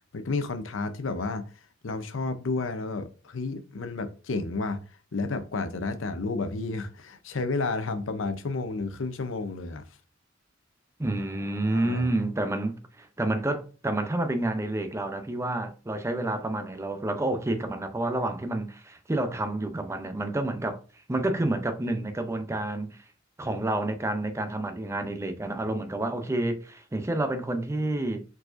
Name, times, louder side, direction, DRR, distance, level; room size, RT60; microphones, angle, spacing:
voice 1, 0.1-1.5 1.8-4.8 5.1-9.8 11.7-12.1, left 3 dB, 80° left, 0.6 m, -31 dB
voice 2, 11.0-20.8 21.1-23.0 23.4-28.2, right 2 dB, 15° right, 0.5 m, -29 dB
4.6 x 4.1 x 2.5 m
head